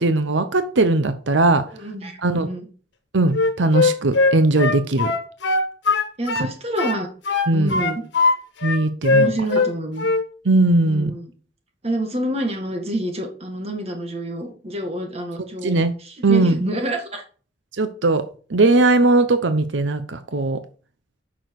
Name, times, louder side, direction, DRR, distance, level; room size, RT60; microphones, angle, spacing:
voice 1, 0.0-1.6 2.2-2.5 3.1-5.1 7.5-7.8 8.6-9.3 10.4-11.1 15.6-15.9 16.2-16.6 17.8-18.2 18.5-20.6, right 2 dB, 85° right, 10 dB, 0.8 m, -19 dB
voice 2, 1.7-2.7 6.2-7.1 7.5-8.0 9.1-10.1 10.8-11.3 11.8-17.2, right 1 dB, 35° right, 3 dB, 2.0 m, -28 dB
Wind instrument woodwind instrument, 3.3-6.5 6.8-8.4 8.6-9.7 10.0-10.3, left 3 dB, 75° left, 1.4 m, -20 dB
9.2 x 6.3 x 4.8 m, 0.41 s
head